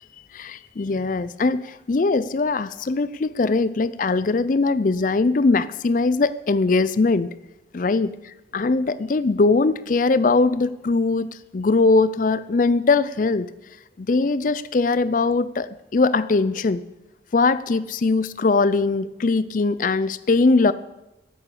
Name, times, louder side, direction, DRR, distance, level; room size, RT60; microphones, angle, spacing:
voice 1, 0.3-7.3 7.7-8.1 8.5-13.5 14.0-16.8 17.3-20.7, left 3 dB, 45° left, 16 dB, 0.4 m, -21 dB
13.0 x 8.7 x 8.3 m, 0.94 s
head